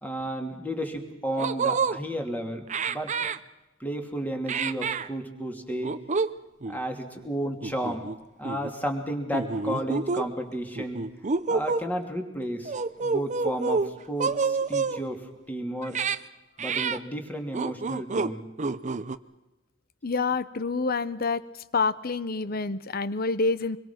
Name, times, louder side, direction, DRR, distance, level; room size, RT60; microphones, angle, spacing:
voice 1, 0.0-3.3 3.8-6.0 6.7-8.1 8.4-11.0 11.5-12.7 13.0-16.0 16.6-18.4, right 1 dB, 10° left, 4 dB, 2.8 m, -32 dB
sound 1, 0.8-0.9 1.4-2.0 2.7-3.4 4.5-5.1 5.8-6.3 6.6-6.8 7.6-8.2 8.4-8.7 9.3-10.2 10.8-11.9 12.7-13.9 14.2-15.0 15.8-16.2 16.6-17.0 17.5-18.3 18.6-19.2, right 4 dB, 35° right, 0.7 m, -28 dB
voice 2, 20.0-21.4 21.7-23.8, left 4 dB, 50° left, 17 dB, 0.9 m, -27 dB
25.5 x 22.5 x 6.0 m, 1.0 s
head